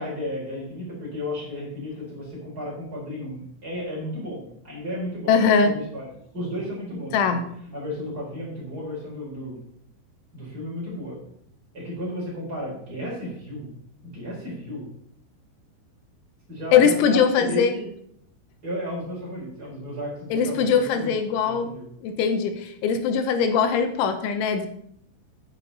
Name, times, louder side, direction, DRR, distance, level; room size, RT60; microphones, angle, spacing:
voice 1, 0.0-5.4 5.6-6.0 6.3-7.4 7.7-9.6 10.3-11.2 11.7-13.7 14.0-14.9 16.5-17.9 18.6-21.1 21.4-21.8, equal, 20° right, -4 dB, 4.1 m, -33 dB
voice 2, 5.3-5.7 7.1-7.4 16.7-17.7 20.3-21.7 22.0-24.7, left 6 dB, 90° left, 8 dB, 3.4 m, -21 dB
11.0 x 8.5 x 4.1 m, 0.69 s
omnidirectional pair, 5.2 m